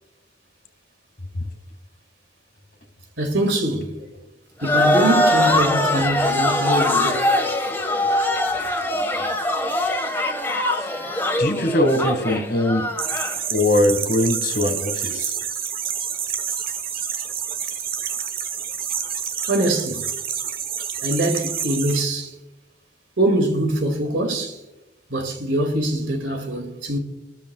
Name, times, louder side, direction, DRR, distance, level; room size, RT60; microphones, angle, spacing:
voice 1, 3.2-4.0 4.6-7.3 19.5-20.1 21.0-22.3 23.2-24.6 25.1-27.0, right 1 dB, 70° right, 2.4 m, -23 dB
sound 1, 4.6-13.4, left 1 dB, 10° left, 1.6 m, -22 dB
voice 2, 10.8-12.9 13.5-15.3, left 1 dB, 55° left, 2.2 m, -22 dB
sound 2, 13.0-22.0, right 8 dB, 50° right, 1.2 m, -28 dB
25.0 x 13.0 x 2.4 m
head